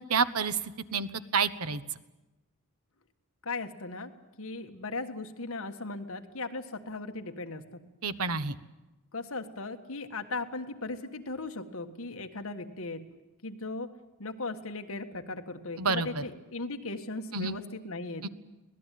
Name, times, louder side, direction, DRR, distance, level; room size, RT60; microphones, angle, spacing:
voice 1, 0.0-1.8 8.0-8.5 15.8-16.2 17.3-17.6 18.2-18.3, right 5 dB, 80° right, 13 dB, 1.1 m, -29 dB
voice 2, 3.4-4.1 4.4-7.8 9.1-13.0 13.4-13.9 14.2-18.3, left 3 dB, 65° left, 6 dB, 1.7 m, -37 dB
25.0 x 18.5 x 9.3 m, 1.1 s
head